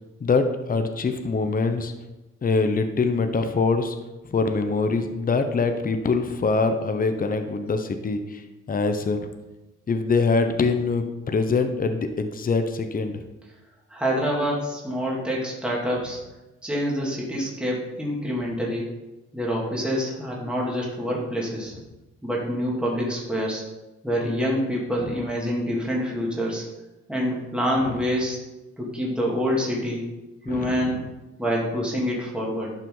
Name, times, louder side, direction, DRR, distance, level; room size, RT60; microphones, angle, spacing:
voice 1, 0.2-1.9 2.4-3.9 4.3-8.2 8.7-9.3 9.9-13.1 30.5-31.0, left 4 dB, 30° left, 7 dB, 0.9 m, -24 dB
voice 2, 13.9-16.2 16.6-18.9 19.3-21.7 22.2-23.6 24.0-26.7 27.1-28.4 28.8-30.0 30.4-31.0 31.4-32.7, equal, 5° right, -4 dB, 2.4 m, -26 dB
11.5 x 5.7 x 3.9 m, 1.0 s
cardioid pair, 90°, 30 cm